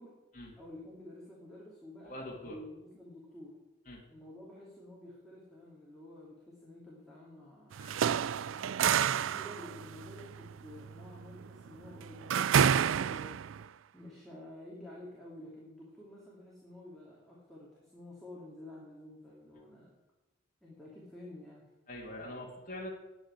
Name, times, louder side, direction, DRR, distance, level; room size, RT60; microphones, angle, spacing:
voice 1, 0.6-3.6 4.1-8.7 9.2-13.4 13.9-19.9 20.6-21.7, left 1 dB, ahead, -6 dB, 2.9 m, -50 dB
voice 2, 2.0-2.6 3.9-4.0 7.8-8.0 21.9-22.9, left 1 dB, 40° left, -3 dB, 2.9 m, -43 dB
sound 1, 7.7-13.6, right 8 dB, 85° right, 0.4 m, -29 dB
9.7 x 9.1 x 9.9 m, 1.1 s
head